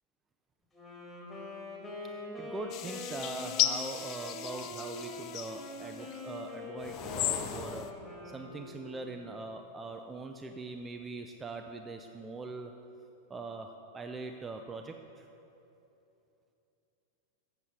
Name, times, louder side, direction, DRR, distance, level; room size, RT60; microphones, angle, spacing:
Wind instrument woodwind instrument, 0.7-9.1, left 2 dB, 15° left, 2.0 m, -44 dB
voice 1, 2.0-7.9 8.2-12.7 13.3-15.3, right 3 dB, 15° right, 5 dB, 0.4 m, -42 dB
sound 1, 2.7-6.2 6.8-7.9, left 11 dB, 40° left, 0.5 m, -35 dB
7.4 x 6.8 x 6.7 m, 2.8 s
figure-of-eight pair, 90°, 0 cm